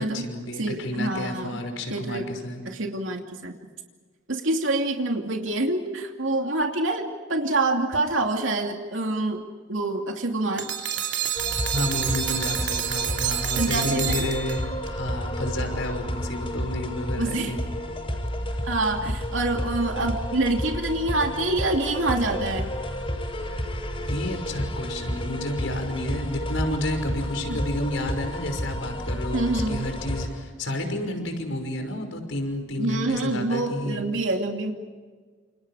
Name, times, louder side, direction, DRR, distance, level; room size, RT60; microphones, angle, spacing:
voice 1, 0.0-2.6 11.7-17.6 24.1-34.0, left 1 dB, 90° left, 5 dB, 5.8 m, -31 dB
voice 2, 0.5-1.6 1.9-2.3 2.7-3.5 4.3-10.7 13.6-14.3 17.2-17.6 18.6-22.7 29.3-29.9 32.8-34.7, right 2 dB, 85° right, 2 dB, 2.7 m, -26 dB
sound 1, 10.6-14.9, right 9 dB, 65° right, 2.9 m, -28 dB
sound 2, 11.3-30.3, equal, 30° left, 6.4 m, -31 dB
30.0 x 28.0 x 5.0 m, 1.5 s
head